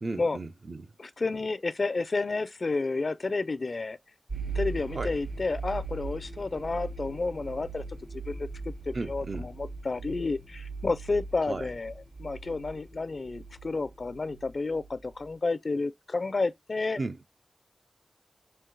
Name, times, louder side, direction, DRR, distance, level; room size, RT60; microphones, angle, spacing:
voice 1, 0.0-0.9 4.9-5.1 8.9-9.5 11.5-11.7 17.0-17.3, right 3 dB, 60° right, 0.6 m, -35 dB
voice 2, 1.0-4.0 4.5-7.8 8.1-8.5 8.9-11.9 12.2-17.0, left 3 dB, 65° left, 0.4 m, -31 dB
sound 1, 4.3-15.2, right 3 dB, 90° right, 2.8 m, -39 dB
4.4 x 2.8 x 3.8 m
wide cardioid pair, 50°, 0 cm